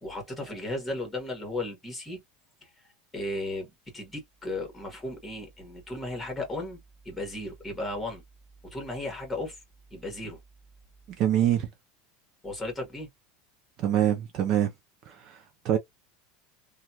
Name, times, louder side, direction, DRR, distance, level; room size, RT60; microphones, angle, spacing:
voice 1, 0.0-2.2 2.6-2.7 3.1-6.8 7.0-8.2 8.6-9.6 9.9-10.4 12.4-13.1, left 2 dB, 10° left, 1.5 m, -35 dB
voice 2, 11.2-11.7 13.8-14.7 15.1-15.4 15.6-15.8, right 11 dB, 40° right, 0.5 m, -24 dB
2.9 x 2.3 x 2.8 m
supercardioid pair, 155°, 0 cm